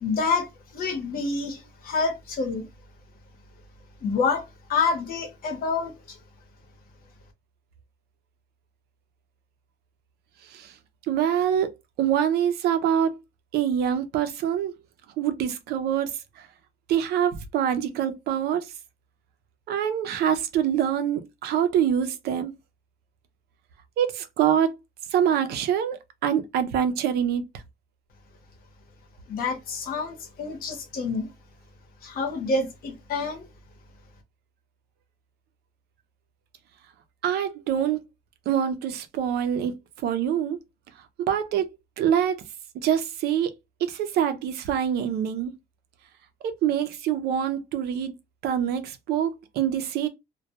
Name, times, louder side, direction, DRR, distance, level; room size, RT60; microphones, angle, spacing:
voice 1, 0.0-2.7 4.0-4.4 4.7-6.2 29.3-31.3 32.0-33.4, left 4 dB, 60° left, 0.9 m, -28 dB
voice 2, 11.1-11.7 12.0-13.2 13.5-14.7 15.2-16.1 16.9-18.7 19.7-22.5 24.0-24.7 25.1-27.4 37.2-38.0 38.5-39.8 40.0-40.6 41.2-42.4 42.7-43.5 43.8-45.5 46.4-48.1 48.4-50.1, right 9 dB, 70° right, 0.6 m, -25 dB
2.2 x 2.2 x 2.8 m
cardioid pair, 110°, 17 cm